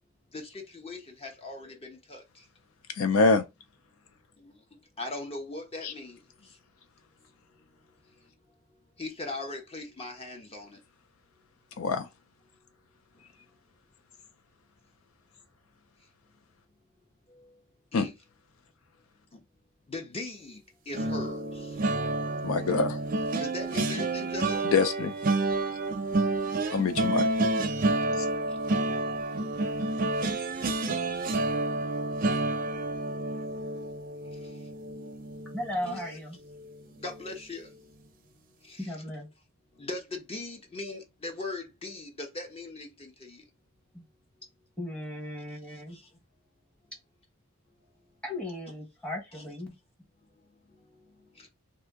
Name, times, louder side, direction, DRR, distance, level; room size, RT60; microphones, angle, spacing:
voice 1, 0.3-2.4 4.4-4.6 5.0-6.2 9.0-10.8 17.3-17.5 17.9-18.1 19.3-19.4 19.9-21.8 23.4-24.6 28.1-28.6 30.1-30.4 35.9-36.0 37.0-37.7 38.6-39.0 39.8-43.4 45.7-46.0 49.3-49.4 51.4-51.5, left 2 dB, 30° left, 0.8 m, -40 dB
voice 2, 3.0-3.4 5.8-5.9 11.8-12.1 17.9-18.1 22.4-23.0 24.6-25.1 26.7-27.3 28.2-28.3, left 4 dB, 75° left, 0.4 m, -25 dB
sound 1, 20.9-36.1 36.5-36.7 37.0-37.2, right 2 dB, 40° right, 0.5 m, -29 dB
voice 3, 35.5-36.4 38.8-39.3 43.9-44.0 44.8-46.0 48.2-49.7, left 1 dB, 5° left, 1.0 m, -36 dB
2.7 x 2.6 x 3.5 m
head